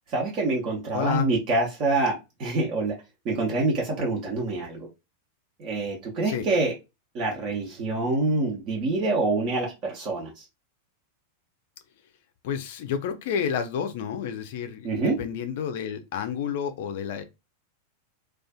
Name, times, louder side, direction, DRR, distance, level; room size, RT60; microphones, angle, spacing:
voice 1, 0.1-2.9 3.2-4.8 5.6-6.7 7.1-10.4 14.8-15.1, right 2 dB, 40° right, 0.8 m, -26 dB
voice 2, 0.9-1.3 6.3-6.5 12.4-17.2, left 7 dB, 50° left, 0.4 m, -30 dB
2.4 x 2.3 x 2.3 m
figure-of-eight pair, 90°, 0 cm